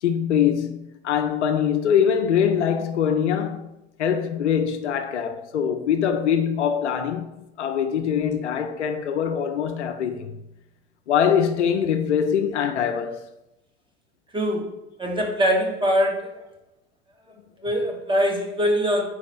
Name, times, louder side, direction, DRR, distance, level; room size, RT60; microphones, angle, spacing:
voice 1, 0.0-3.7 4.0-7.3 7.6-10.4 11.1-13.2, left 8 dB, 85° left, 0.7 m, -23 dB
voice 2, 14.3-14.7 15.0-16.4 17.6-19.0, equal, 15° right, 1.4 m, -22 dB
4.7 x 4.1 x 5.0 m
hypercardioid pair, 90°, 34 cm